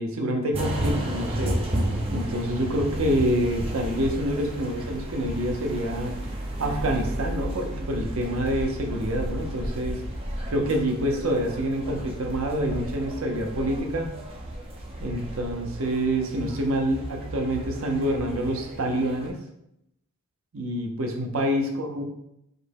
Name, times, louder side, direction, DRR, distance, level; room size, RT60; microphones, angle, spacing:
voice 1, 0.0-1.6 2.1-6.1 6.6-10.0 10.5-14.2 15.0-19.4 20.5-22.0, equal, 75° right, 3 dB, 0.7 m, -27 dB
sound 1, 0.5-19.3, right 1 dB, 25° right, 0.7 m, -33 dB
5.1 x 2.1 x 4.5 m, 0.81 s
head